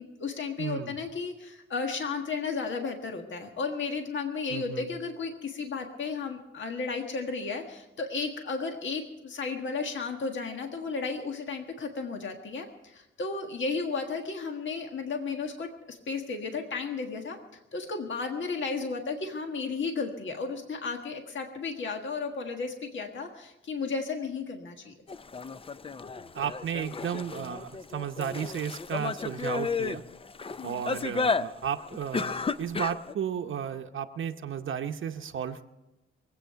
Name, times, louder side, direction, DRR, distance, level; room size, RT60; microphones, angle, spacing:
voice 1, 0.0-17.4 17.7-24.9 30.6-30.9, left 4 dB, 65° left, 4 dB, 1.6 m, -34 dB
voice 2, 0.6-1.0 4.5-4.9 26.3-30.0 30.6-35.6, right 8 dB, 70° right, 5 dB, 0.8 m, -34 dB
sound 1, 25.1-33.1, left 4 dB, 25° left, 0.5 m, -33 dB
23.0 x 8.6 x 5.7 m, 0.98 s
cardioid pair, 95°, 21 cm